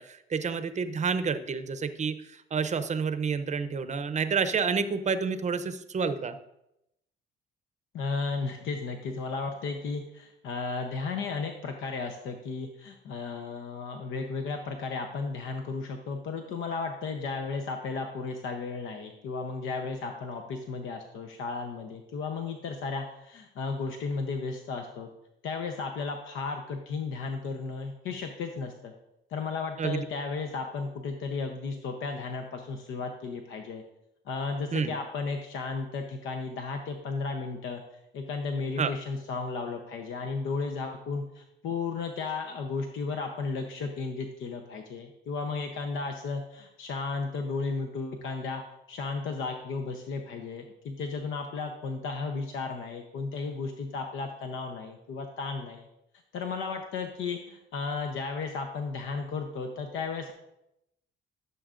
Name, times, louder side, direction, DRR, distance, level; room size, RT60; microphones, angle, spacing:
voice 1, 0.0-2.2 2.5-6.4 29.8-30.1 34.7-34.9 38.8-38.9, right 5 dB, 35° right, 11 dB, 0.6 m, -29 dB
voice 2, 7.9-25.1 25.4-28.9 29.3-33.8 34.3-37.8 38.1-48.6 48.9-55.9 56.3-60.3, left 4 dB, 80° left, 4 dB, 0.8 m, -34 dB
12.5 x 6.9 x 2.5 m, 0.85 s
cardioid pair, 90°, 20 cm